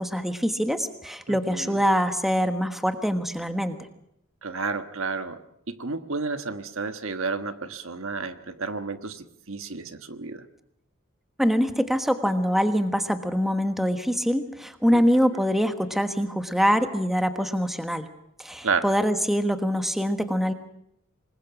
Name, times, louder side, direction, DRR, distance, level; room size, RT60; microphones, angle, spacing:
voice 1, 0.0-3.8 11.4-18.1 18.4-20.5, equal, ahead, 7 dB, 1.3 m, -24 dB
voice 2, 1.3-1.8 4.4-5.4 5.7-10.4 14.9-15.0 18.6-18.9, right 4 dB, 70° right, 9 dB, 1.3 m, -31 dB
26.0 x 21.0 x 6.0 m, 0.78 s
head